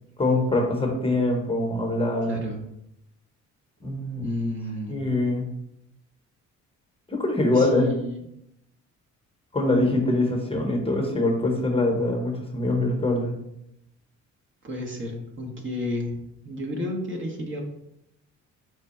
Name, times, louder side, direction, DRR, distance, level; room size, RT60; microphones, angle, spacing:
voice 1, 0.2-2.4 3.8-4.3 4.9-5.5 7.1-7.9 9.5-13.4, left 2 dB, 20° left, 1 dB, 0.9 m, -23 dB
voice 2, 2.2-2.6 4.2-4.9 7.5-8.2 14.6-16.2 16.4-17.6, left 1 dB, 40° right, 0 dB, 1.0 m, -31 dB
4.9 x 2.2 x 4.3 m, 0.80 s
cardioid pair, 90°, 30 cm